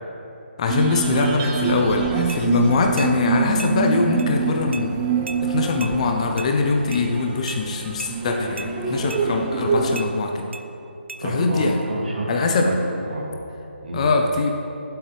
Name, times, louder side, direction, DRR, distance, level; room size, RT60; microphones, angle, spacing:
voice 1, 0.6-5.1 5.4-10.5 11.2-11.8 12.3-12.7 13.9-14.5, left 3 dB, 35° left, 3 dB, 0.8 m, -22 dB
sound 1, 0.7-10.0, right 5 dB, 20° right, 0.7 m, -25 dB
sound 2, 2.3-2.4 3.0-3.1 3.6-3.7 4.2-4.3 4.7-4.9 5.3-5.4 5.8-6.0 6.4-6.5 6.9-7.0 7.5-7.6 8.0-8.1 8.6-8.7 9.1-9.2 10.0-10.1 10.5-10.7 11.1-11.2, right 3 dB, 80° right, 0.6 m, -35 dB
voice 2, 11.2-13.3 13.8-14.1, right 1 dB, 55° right, -2 dB, 2.6 m, -29 dB
18.5 x 7.9 x 3.5 m, 2.9 s
hypercardioid pair, 160°, 6 cm